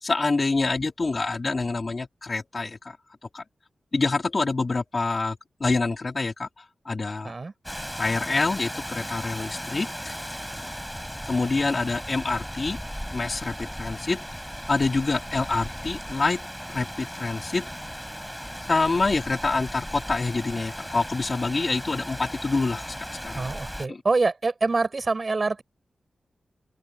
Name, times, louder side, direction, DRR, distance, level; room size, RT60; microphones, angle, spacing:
voice 1, 0.0-3.0 3.3-3.4 3.9-6.5 6.9-7.3 8.0-10.2 11.3-12.8 13.1-14.2 14.7-16.4 16.7-17.6 18.7-23.0 23.2-23.4 23.9-24.0, left 3 dB, 45° left, 2.3 m, -26 dB
Rain, 7.6-23.9, equal, ahead, 5.9 m, -36 dB
voice 2, 23.3-25.6, right 3 dB, 45° right, 6.1 m, -25 dB
open air
cardioid pair, 60°, 0 cm